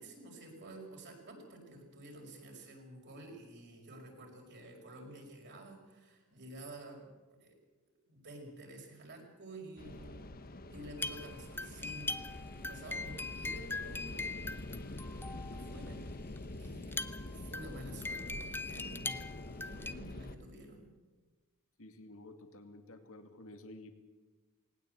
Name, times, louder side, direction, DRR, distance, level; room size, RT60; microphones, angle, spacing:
voice 1, 0.0-7.1 7.4-7.5 8.1-12.1 12.5-14.6 15.5-16.1 16.5-19.3 19.6-20.9, right 1 dB, 50° right, 1 dB, 5.7 m, -50 dB
sound 1, 9.8-20.4, left 1 dB, 40° left, 1.1 m, -46 dB
sound 2, 11.0-15.9 16.4-16.5 16.6-19.9, left 3 dB, 10° left, 0.8 m, -41 dB
voice 2, 21.8-23.9, left 1 dB, 65° left, 7 dB, 2.3 m, -52 dB
19.5 x 19.0 x 8.2 m, 1.3 s
head